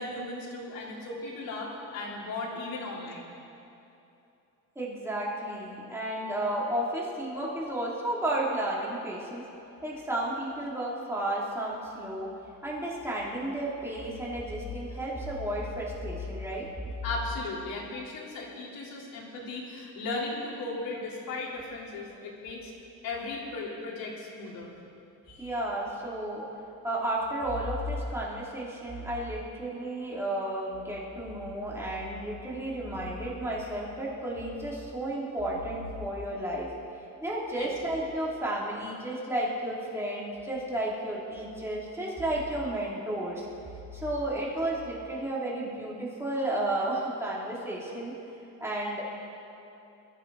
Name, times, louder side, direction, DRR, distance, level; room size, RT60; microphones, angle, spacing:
voice 1, 0.0-3.3 17.0-22.7 23.0-24.7 25.3-25.6 37.6-37.7, left 2 dB, 80° left, -4 dB, 4.1 m, -36 dB
voice 2, 4.7-9.4 9.8-12.3 12.6-16.7 25.4-26.4 26.8-36.7 37.2-43.4 43.9-48.1 48.6-49.0, right 1 dB, 5° right, -5 dB, 3.1 m, -32 dB
23.0 x 13.0 x 4.1 m, 2.8 s
cardioid pair, 135°, 34 cm